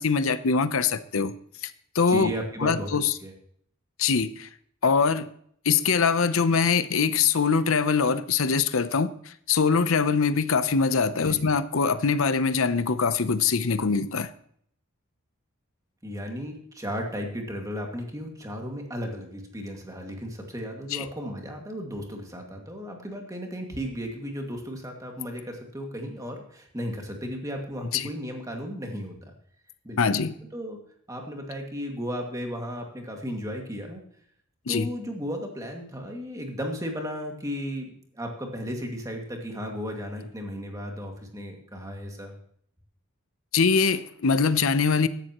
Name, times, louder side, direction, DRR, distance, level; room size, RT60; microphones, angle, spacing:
voice 1, 0.0-1.3 1.9-2.3 2.6-3.1 4.0-4.5 4.8-5.3 5.7-9.1 9.5-14.3 20.9-21.1 27.9-28.1 30.0-30.3 34.7-34.9 43.5-45.1, left 5 dB, 70° left, 13 dB, 0.7 m, -23 dB
voice 2, 2.1-2.9 3.2-3.3 11.1-11.4 16.0-29.3 29.8-30.2 30.5-30.8 31.1-34.0 34.7-42.3, equal, 15° right, 2 dB, 2.2 m, -35 dB
14.5 x 11.0 x 3.0 m, 0.64 s
head